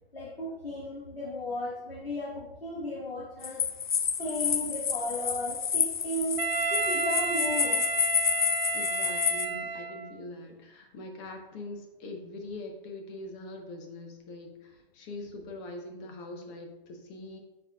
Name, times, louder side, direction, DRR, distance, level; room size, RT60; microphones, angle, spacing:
voice 1, 0.1-3.7 4.2-6.4 6.7-7.9, left 1 dB, 80° left, -5 dB, 1.4 m, -35 dB
sound 1, 3.4-9.5, left 7 dB, 55° left, 0.6 m, -29 dB
Wind instrument woodwind instrument, 6.4-10.2, right 5 dB, 90° right, 0.6 m, -31 dB
voice 2, 8.7-17.4, left 2 dB, 15° left, 3 dB, 0.6 m, -42 dB
10.0 x 4.2 x 2.4 m, 1.0 s
figure-of-eight pair, 135°, 29 cm